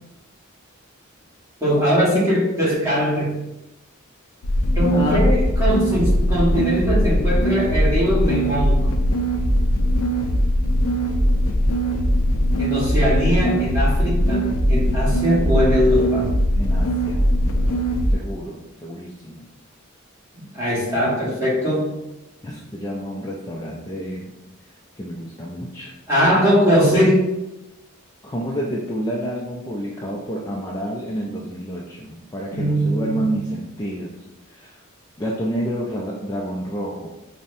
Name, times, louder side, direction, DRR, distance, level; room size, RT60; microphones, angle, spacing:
voice 1, 1.6-3.4 4.7-8.9 12.6-16.3 20.5-22.0 26.1-27.3 32.5-33.3, equal, 15° right, -7 dB, 1.2 m, -20 dB
sound 1, 4.4-18.1, equal, 85° left, 0.5 m, -20 dB
voice 2, 4.9-5.3 16.5-17.3 18.1-19.5 22.4-24.3 25.0-25.9 28.2-34.1 34.5-34.8 35.2-37.1, equal, 15° left, -3 dB, 0.3 m, -29 dB
5.4 x 2.1 x 2.6 m, 0.95 s
head